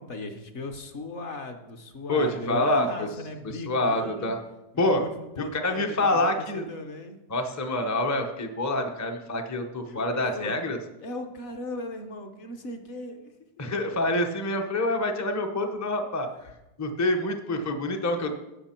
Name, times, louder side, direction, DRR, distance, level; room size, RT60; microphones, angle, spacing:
voice 1, 0.0-4.3 4.7-7.2 9.8-10.5 11.0-13.9, left 2 dB, 50° left, 5 dB, 1.1 m, -38 dB
voice 2, 2.1-3.1 3.7-4.4 4.8-5.0 5.4-6.7 7.3-10.8 13.6-16.5 16.8-18.3, left 1 dB, 20° left, 3 dB, 0.4 m, -26 dB
16.5 x 6.0 x 4.4 m, 0.96 s
omnidirectional pair, 1.8 m